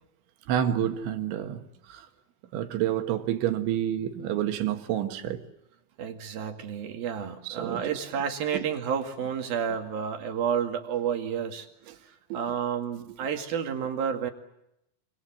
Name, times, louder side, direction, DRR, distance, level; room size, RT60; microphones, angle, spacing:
voice 1, 0.5-1.6 1.9-2.1 2.5-5.4 7.4-8.0 11.9-12.0 12.3-12.6, right 11 dB, 85° right, 4.0 m, -29 dB
voice 2, 6.0-11.7 12.3-14.3, right 7 dB, 60° right, 3.6 m, -30 dB
27.0 x 26.0 x 7.6 m
omnidirectional pair, 5.3 m